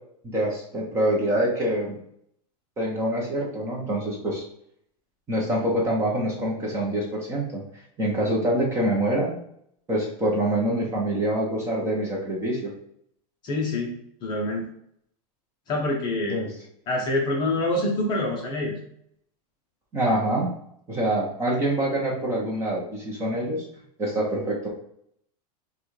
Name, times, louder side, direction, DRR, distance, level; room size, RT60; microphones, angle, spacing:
voice 1, 0.2-2.0 2.8-4.4 5.3-7.6 8.0-9.4 9.9-12.7 16.3-16.5 19.9-20.5 20.9-23.6 24.0-24.7, right 1 dB, 15° right, -2 dB, 0.7 m, -25 dB
voice 2, 13.4-13.9 14.2-14.6 15.7-16.4 16.9-18.7, left 2 dB, 20° left, -1 dB, 0.6 m, -26 dB
5.8 x 2.3 x 3.2 m, 0.70 s
supercardioid pair, 175°, 20 cm